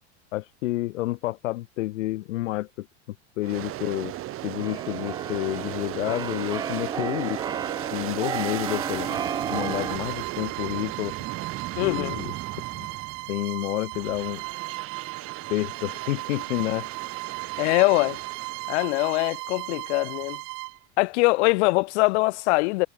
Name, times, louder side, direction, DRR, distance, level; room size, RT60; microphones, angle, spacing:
voice 1, 0.3-2.9 3.4-4.1 4.4-7.4 7.9-9.2 9.5-11.1 11.8-12.3 12.8-12.9 13.3-14.4 15.5-16.9, left 17 dB, 85° left, 1.5 m, -29 dB
Aircraft, 3.4-13.4 13.9-18.9, right 15 dB, 35° right, 2.1 m, -37 dB
Keyboard (musical), 4.1-10.0, right 7 dB, 10° right, 0.4 m, -33 dB
Bowed string instrument, 9.0-20.8, right 29 dB, 55° right, 4.1 m, -36 dB
voice 2, 11.8-12.2 17.6-18.2 18.7-20.4 21.0-22.9, left 25 dB, 65° left, 0.5 m, -22 dB
supercardioid pair, 140°, 37 cm